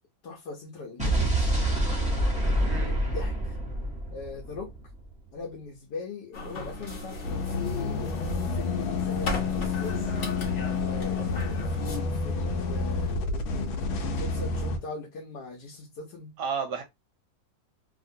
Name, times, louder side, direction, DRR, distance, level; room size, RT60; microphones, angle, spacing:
voice 1, 0.2-1.5 2.6-3.6 4.1-4.7 5.3-8.2 8.5-10.1 10.8-16.3, left 4 dB, 65° left, 1.3 m, -40 dB
Explosion, 1.0-5.1, right 1 dB, 10° right, 0.5 m, -27 dB
voice 2, 2.6-2.9 16.4-16.8, right 6 dB, 75° right, 1.1 m, -32 dB
sound 1, 6.3-12.0, left 1 dB, 50° left, 1.0 m, -37 dB
sound 2, 7.2-14.8, left 4 dB, 85° left, 1.4 m, -29 dB
2.9 x 2.8 x 2.6 m
omnidirectional pair, 2.1 m